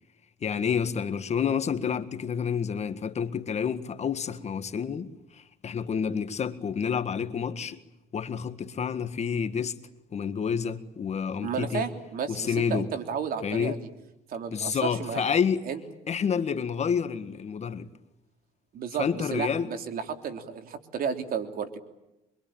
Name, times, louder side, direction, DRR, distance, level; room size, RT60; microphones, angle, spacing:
voice 1, 0.4-7.8 8.1-9.8 10.1-11.8 12.3-12.9 13.4-13.8 14.5-15.6 16.1-17.9 19.0-19.7, left 7 dB, 40° left, 1.7 m, -29 dB
voice 2, 11.4-13.8 14.3-15.2 15.7-15.8 18.7-21.8, right 6 dB, 60° right, 3.4 m, -32 dB
26.0 x 24.0 x 8.9 m
cardioid pair, 110°, 17 cm